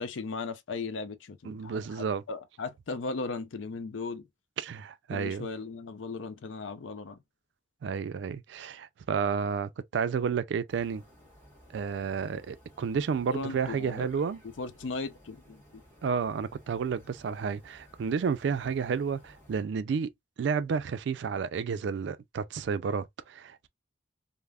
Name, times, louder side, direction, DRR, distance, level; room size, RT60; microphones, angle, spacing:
voice 1, 0.0-4.3 5.1-7.2 13.3-14.1 14.6-15.8, left 4 dB, 90° left, 0.5 m, -37 dB
voice 2, 1.4-2.2 4.6-5.5 7.8-11.0 11.7-14.4 16.0-20.1 20.4-23.7, right 6 dB, 70° right, 0.3 m, -31 dB
sound 1, 10.7-19.6, equal, 15° left, 1.2 m, -57 dB
3.3 x 2.0 x 2.3 m
head